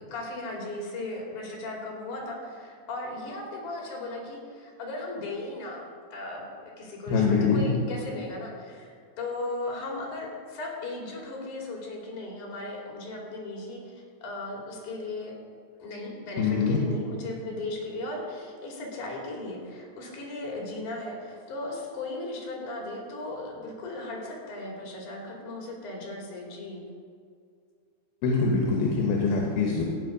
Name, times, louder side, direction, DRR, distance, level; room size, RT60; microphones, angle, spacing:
voice 1, 0.0-5.8 6.1-15.3 15.8-26.8, left 2 dB, 50° left, -2 dB, 3.9 m, -37 dB
voice 2, 7.1-7.6 16.4-16.8 28.2-29.8, left 4 dB, 75° left, -1 dB, 3.1 m, -24 dB
15.0 x 9.4 x 5.1 m, 2.1 s
omnidirectional pair, 4.6 m